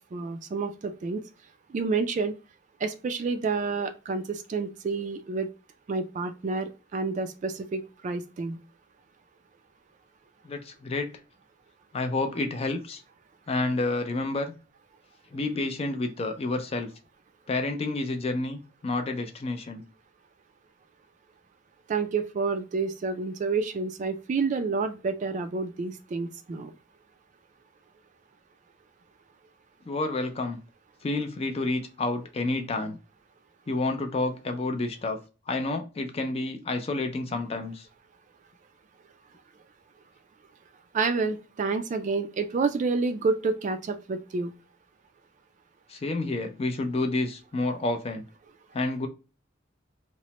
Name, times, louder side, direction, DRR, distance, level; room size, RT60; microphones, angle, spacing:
voice 1, 0.1-1.2 1.7-2.3 2.8-5.5 5.9-8.6 21.9-26.7 40.9-44.5, right 4 dB, 40° right, 9 dB, 0.3 m, -29 dB
voice 2, 10.4-11.1 11.9-13.0 13.5-14.5 15.3-16.9 17.5-19.8 29.9-30.6 31.0-33.0 33.7-35.2 35.5-37.9 45.9-48.2 48.7-49.1, left 2 dB, 30° left, 6 dB, 0.4 m, -29 dB
3.0 x 2.1 x 2.7 m, 0.32 s
head